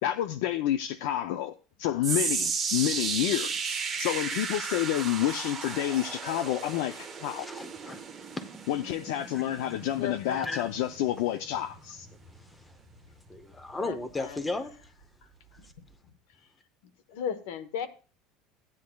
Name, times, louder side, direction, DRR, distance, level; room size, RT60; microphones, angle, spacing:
voice 1, 0.0-7.5 8.7-12.1, left 12 dB, 65° left, 0.4 m, -29 dB
sound 1, 2.0-14.4 14.7-15.0 15.7-15.8, right 5 dB, 10° right, 1.0 m, -35 dB
voice 2, 7.3-8.0 10.3-10.6 13.3-14.8, left 2 dB, 10° left, 0.7 m, -35 dB
voice 3, 10.0-10.7 13.8-14.4 17.1-17.9, left 7 dB, 85° left, 1.0 m, -36 dB
15.0 x 9.5 x 2.3 m
cardioid pair, 175°, 0 cm